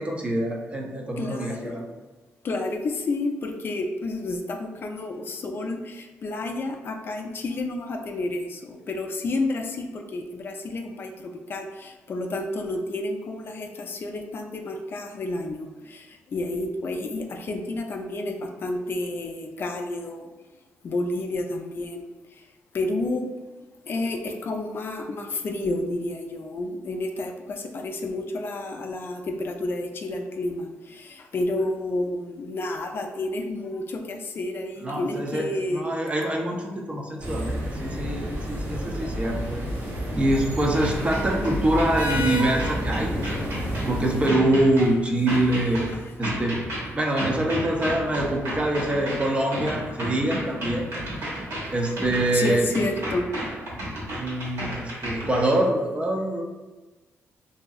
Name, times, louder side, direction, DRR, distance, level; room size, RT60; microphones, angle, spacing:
voice 1, 0.0-1.8 34.8-39.6 40.2-46.6 46.9-50.8 51.7-52.7 54.1-56.4, right 1 dB, 25° right, 0 dB, 0.5 m, -25 dB
voice 2, 1.2-1.8 2.4-20.3 20.8-22.5 22.7-35.9 38.9-39.1 46.3-46.8 48.6-48.8 49.5-49.7 50.9-51.9 52.3-53.3 53.9-54.1 54.8-55.1, left 2 dB, 50° left, 4 dB, 0.3 m, -31 dB
sound 1, 37.2-44.3, equal, 50° right, 0.9 m, -30 dB
sound 2, 40.7-55.6, equal, 75° right, 1.2 m, -33 dB
2.9 x 2.6 x 2.4 m, 1.2 s
cardioid pair, 90°, 5 cm